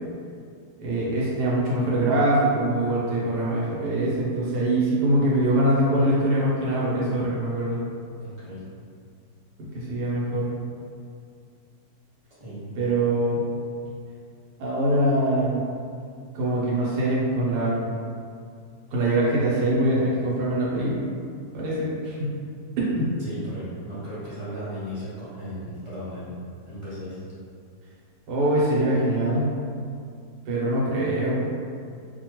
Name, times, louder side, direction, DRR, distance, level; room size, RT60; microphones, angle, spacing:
voice 1, 0.8-7.8 9.6-10.5 12.8-13.4 14.6-15.7 16.3-17.9 18.9-21.0 21.5-22.3 22.9-23.1 28.3-29.5 30.5-31.4, right 1 dB, 90° right, -6 dB, 1.3 m, -23 dB
voice 2, 8.2-8.6 12.4-12.7 23.2-26.4 26.7-27.2, equal, 25° right, -11 dB, 0.7 m, -36 dB
2.8 x 2.2 x 2.9 m, 2.3 s
omnidirectional pair, 1.7 m